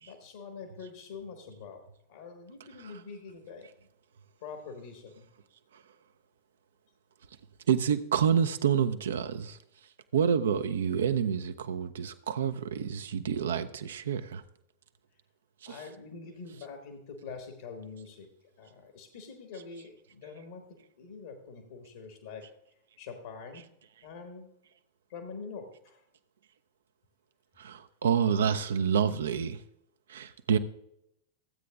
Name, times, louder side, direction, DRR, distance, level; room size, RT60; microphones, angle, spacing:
voice 1, 0.0-1.8 2.1-3.7 4.4-5.2 15.6-18.3 18.6-20.7 21.0-23.7 24.0-24.5 25.1-26.0, left 5 dB, 60° left, 1.5 m, -45 dB
voice 2, 7.7-9.6 10.1-14.4 15.6-15.9 19.5-19.6 23.5-23.6 27.6-29.6 30.1-30.6, right 7 dB, 65° right, 0.5 m, -28 dB
15.0 x 8.3 x 2.4 m
figure-of-eight pair, 90°, 0 cm